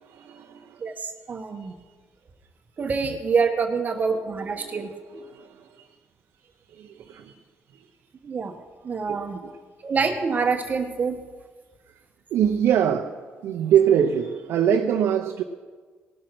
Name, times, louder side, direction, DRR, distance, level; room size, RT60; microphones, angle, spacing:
voice 1, 0.0-0.8 3.0-3.1 4.0-4.1 4.4-5.8 6.7-7.4 7.7-7.8 9.1-9.6 12.3-13.2 13.4-15.4, right 9 dB, 85° right, 2 dB, 0.7 m, -24 dB
voice 2, 0.8-1.7 2.8-4.9 8.2-8.5 8.8-9.4 9.8-11.2, right 5 dB, 40° right, 6 dB, 1.0 m, -26 dB
18.5 x 6.4 x 6.0 m, 1.5 s
cardioid pair, 110°, 5 cm